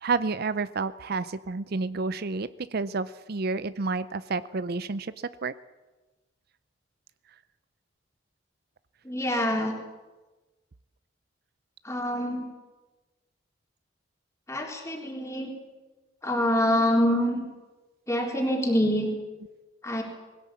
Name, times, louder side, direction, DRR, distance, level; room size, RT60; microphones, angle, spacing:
voice 1, 0.0-5.1 5.4-5.5, right 4 dB, 50° right, 15 dB, 0.6 m, -30 dB
voice 2, 9.0-9.7 11.8-12.5 14.5-15.5 16.2-17.4 18.1-19.1 19.8-20.0, equal, 15° left, 1 dB, 3.8 m, -25 dB
20.5 x 17.0 x 8.4 m, 1.2 s
head